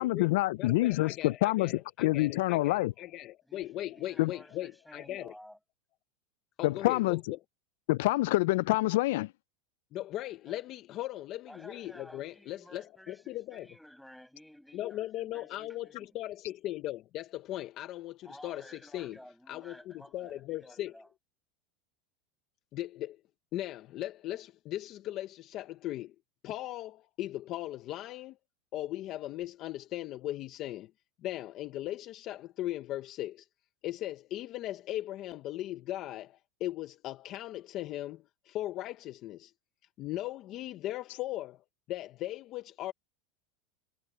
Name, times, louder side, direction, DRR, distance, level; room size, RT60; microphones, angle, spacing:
voice 1, 0.0-2.9 4.2-4.3 6.6-7.2 7.9-9.3, left 19 dB, 70° left, 0.3 m, -27 dB
voice 2, 0.6-5.3 6.6-7.4 9.9-13.7 14.7-19.2 19.5-20.9 22.7-23.2 23.5-26.1 26.4-28.4 28.7-30.9 31.2-33.5 33.8-39.5 40.0-41.6 41.9-42.9, left 14 dB, 40° left, 0.9 m, -38 dB
voice 3, 3.4-5.6 10.4-10.7 11.5-16.2 18.2-21.1, equal, ahead, 7.0 m, -54 dB
supercardioid pair, 150°, 0 cm